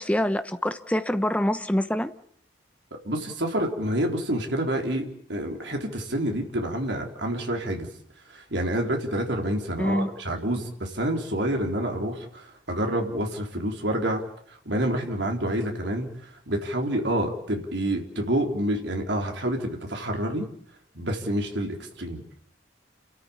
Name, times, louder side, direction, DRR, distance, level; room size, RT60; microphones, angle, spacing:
voice 1, 0.0-2.1 9.8-10.1, left 1 dB, 5° left, 1.0 m, -25 dB
voice 2, 3.0-7.9 8.3-14.2 14.7-16.1 16.5-20.4 20.9-22.2, right 1 dB, 70° right, 3.9 m, -28 dB
29.5 x 13.5 x 8.6 m
head